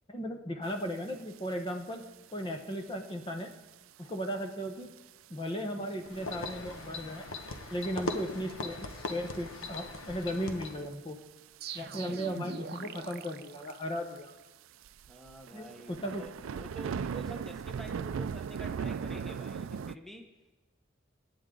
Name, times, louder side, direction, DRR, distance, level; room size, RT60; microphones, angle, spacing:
voice 1, 0.1-2.1 2.3-3.5 4.0-4.9 5.3-7.3 7.7-11.2 11.7-14.3 15.5-16.3, equal, 25° left, 4 dB, 1.1 m, -36 dB
sound 1, 1.3-1.4 1.7-2.0 2.7-2.9 3.5-3.6 4.2-4.3 4.7-4.8 5.0-5.1 6.2-6.4 6.8-6.9 7.8-7.9 8.5-8.9 9.3-9.4 10.0-10.6 11.7-12.0 12.3-12.4 12.7-12.8 13.0-13.1 13.7-13.8 14.2-14.3 14.8-20.0, right 6 dB, 85° right, 0.4 m, -37 dB
sound 2, 6.0-10.9, left 2 dB, 90° left, 1.1 m, -40 dB
sound 3, 11.6-14.4, right 5 dB, 55° right, 0.7 m, -43 dB
voice 2, 15.1-20.3, right 2 dB, ahead, 3 dB, 1.0 m, -47 dB
26.5 x 9.2 x 3.8 m, 1.1 s
head